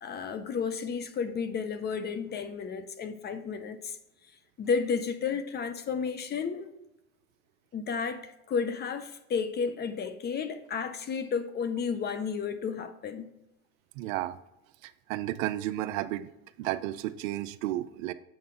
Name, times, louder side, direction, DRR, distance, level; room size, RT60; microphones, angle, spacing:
voice 1, 0.0-4.0 4.6-6.7 7.7-13.3, left 6 dB, 25° left, 0.5 m, -32 dB
voice 2, 14.0-14.4 14.8-16.3 16.6-18.1, right 14 dB, 65° right, 0.6 m, -32 dB
7.8 x 5.8 x 3.7 m
hypercardioid pair, 105°, 42 cm